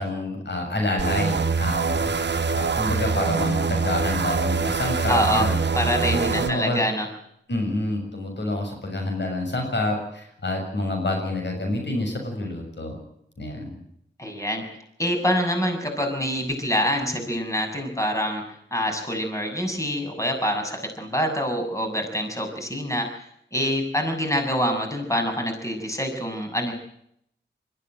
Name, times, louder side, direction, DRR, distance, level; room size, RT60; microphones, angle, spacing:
voice 1, 0.0-2.2 2.5-5.6 6.1-6.8 7.5-13.0 13.4-13.8, left 2 dB, 70° left, 3 dB, 7.0 m, -28 dB
sound 1, 1.0-6.5, right 5 dB, 65° right, 1.3 m, -24 dB
voice 2, 5.1-5.5 5.8-7.1 14.2-14.6 15.0-23.1 23.5-26.7, equal, 15° left, 4 dB, 6.9 m, -25 dB
21.5 x 15.5 x 9.1 m, 0.73 s
cardioid pair, 45°, 19 cm